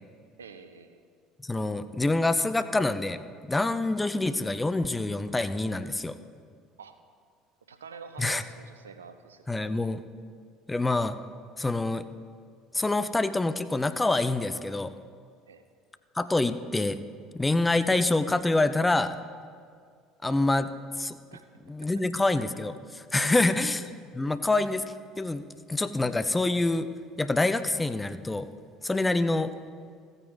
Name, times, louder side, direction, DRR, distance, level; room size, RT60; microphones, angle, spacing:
voice 1, 0.4-1.0 6.8-7.0 7.7-9.4 15.5-15.6 21.3-21.4 23.2-23.7, right 5 dB, 80° right, 9 dB, 0.5 m, -46 dB
voice 2, 1.4-6.1 8.2-8.4 9.5-10.0 10.7-11.2 11.6-12.1 12.7-14.9 16.2-17.0 17.3-19.2 20.2-20.7 21.0-21.2 21.7-23.8 24.1-24.8 25.2-25.4 25.7-26.9 27.2-28.5 28.8-29.5, left 2 dB, 15° left, 12 dB, 0.5 m, -26 dB
15.0 x 9.0 x 3.9 m, 2.1 s
figure-of-eight pair, 65°, 0 cm